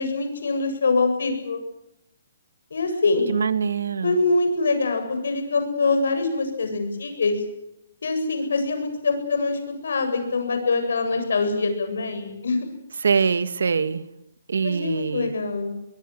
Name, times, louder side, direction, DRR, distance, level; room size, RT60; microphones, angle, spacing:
voice 1, 0.0-1.6 2.7-3.3 4.0-7.4 8.0-12.6 14.6-15.7, left 3 dB, 70° left, 6 dB, 8.0 m, -24 dB
voice 2, 3.3-4.2 13.0-14.1 14.5-15.3, right 5 dB, 80° right, 13 dB, 1.9 m, -23 dB
25.5 x 22.0 x 7.8 m, 0.84 s
hypercardioid pair, 180°, 0 cm